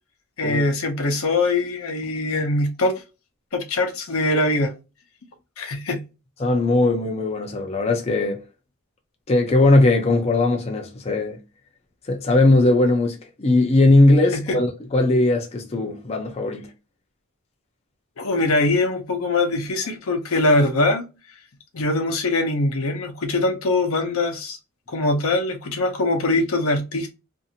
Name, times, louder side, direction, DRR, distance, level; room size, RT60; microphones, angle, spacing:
voice 1, 0.4-2.9 3.5-4.7 5.6-6.0 14.3-14.6 18.2-21.0 21.7-24.6 24.9-27.1, left 2 dB, 75° left, 0.7 m, -22 dB
voice 2, 6.4-8.4 9.3-11.4 12.1-16.7, left 2 dB, 30° left, 0.5 m, -19 dB
2.6 x 2.5 x 2.7 m
head